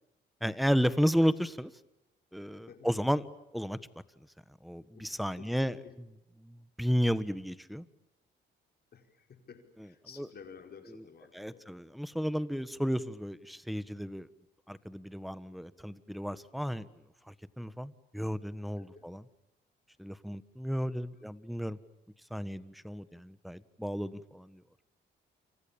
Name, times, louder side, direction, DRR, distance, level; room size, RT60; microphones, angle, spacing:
voice 1, 0.4-1.7 2.3-3.2 3.5-3.8 4.6-5.7 6.4-7.8 10.2-10.3 11.3-14.3 14.7-16.9 17.3-19.2 20.0-21.8 22.3-24.6, equal, ahead, 15 dB, 1.4 m, -33 dB
voice 2, 4.9-6.0 8.9-11.7 18.8-19.1 21.1-21.3, left 6 dB, 55° left, 4 dB, 5.3 m, -53 dB
29.0 x 25.5 x 7.2 m, 0.94 s
cardioid pair, 90°, 20 cm